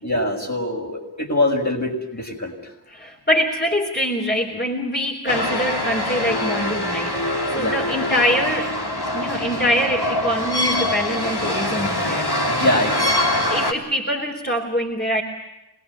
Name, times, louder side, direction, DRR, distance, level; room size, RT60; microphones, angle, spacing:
voice 1, 0.0-2.5 7.6-7.8 12.5-13.3, left 1 dB, 45° left, 1 dB, 7.0 m, -23 dB
voice 2, 2.9-8.8 9.1-12.3 13.5-15.2, equal, 25° left, 1 dB, 3.6 m, -24 dB
sound 1, 5.3-13.7, left 1 dB, 70° left, 3.5 m, -24 dB
27.0 x 20.5 x 8.6 m, 0.93 s
wide cardioid pair, 40°, 40 cm